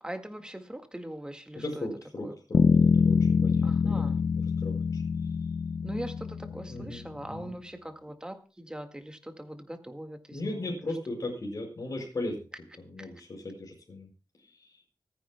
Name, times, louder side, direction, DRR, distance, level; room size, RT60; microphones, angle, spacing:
voice 1, 0.0-1.9 2.2-2.3 3.6-4.2 5.8-10.9 13.0-13.1, right 1 dB, 10° right, 6 dB, 1.8 m, -41 dB
voice 2, 1.5-2.6 3.0-4.2 4.6-5.0 6.6-7.5 10.3-12.4 12.8-14.1 14.4-14.8, left 2 dB, 50° left, 0 dB, 5.1 m, -37 dB
sound 1, 2.5-6.9, left 5 dB, 70° left, 0.5 m, -25 dB
25.0 x 10.0 x 2.2 m, 0.35 s
wide cardioid pair, 110°, 7 cm